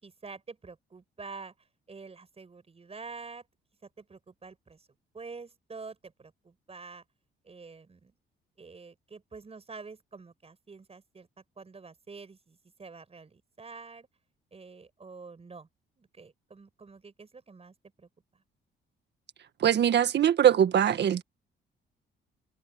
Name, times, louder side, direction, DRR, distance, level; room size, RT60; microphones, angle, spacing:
voice 1, 0.0-3.5 3.8-4.9 5.1-7.0 7.4-8.1 8.6-14.1 14.5-15.7 16.0-18.4, right 4 dB, 30° right, 6.6 m, -47 dB
voice 2, 19.6-21.2, right 10 dB, 60° right, 1.7 m, -22 dB
cardioid pair, 90°, 20 cm